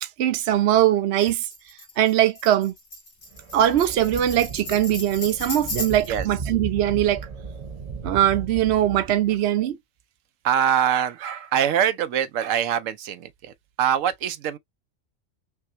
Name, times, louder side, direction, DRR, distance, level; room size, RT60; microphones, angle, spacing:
voice 1, 0.2-1.5 2.0-2.7 3.5-7.2 8.0-9.8, right 12 dB, 60° right, 0.9 m, -21 dB
Tambourine, 1.2-6.2, left 2 dB, 65° left, 1.9 m, -36 dB
sound 1, 3.3-9.5, right 5 dB, 35° right, 0.8 m, -36 dB
voice 2, 10.4-14.6, right 9 dB, 85° right, 1.0 m, -24 dB
5.7 x 2.2 x 2.8 m
omnidirectional pair, 1.3 m